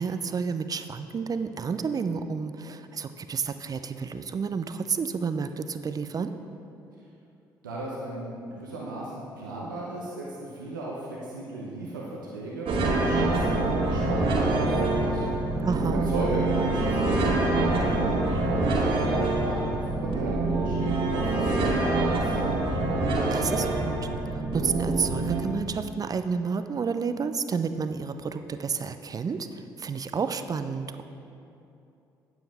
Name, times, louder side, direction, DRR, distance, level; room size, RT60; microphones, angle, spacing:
voice 1, 0.0-6.3 15.6-16.1 23.3-31.0, right 5 dB, 35° right, 10 dB, 0.6 m, -30 dB
voice 2, 7.6-10.3 10.5-15.4 16.1-22.6, right 2 dB, 85° right, -4 dB, 1.0 m, -35 dB
sound 1, 12.7-25.4, right 2 dB, 60° right, 1.8 m, -25 dB
12.0 x 9.1 x 3.5 m, 2.7 s
figure-of-eight pair, 45°, 10 cm